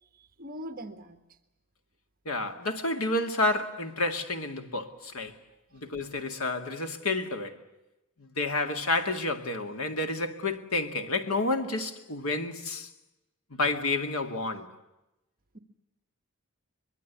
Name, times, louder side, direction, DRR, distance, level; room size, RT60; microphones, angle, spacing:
voice 1, 0.0-1.2 15.5-15.6, equal, 40° right, 1.4 m, -42 dB
voice 2, 2.3-5.4 5.7-7.6 8.2-12.9 13.5-14.7, left 2 dB, 90° left, 2.2 m, -30 dB
23.5 x 22.5 x 8.3 m
head